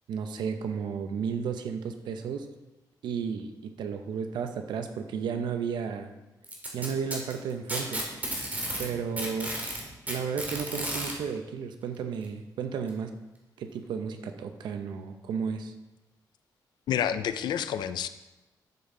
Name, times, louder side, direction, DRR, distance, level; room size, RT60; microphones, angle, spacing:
voice 1, 0.1-2.5 3.0-6.1 6.7-8.0 8.8-9.6 10.1-13.2 13.6-15.7, right 6 dB, 85° right, 7 dB, 0.8 m, -33 dB
Packing tape duct tape, 6.4-8.9 9.2-11.1 12.2-12.3 12.9-13.0 13.8-13.9, right 1 dB, 20° right, 2.5 m, -33 dB
voice 2, 16.9-18.1, left 9 dB, 80° left, 12 dB, 0.5 m, -29 dB
10.5 x 7.3 x 3.9 m, 1.1 s
cardioid pair, 115°, 7 cm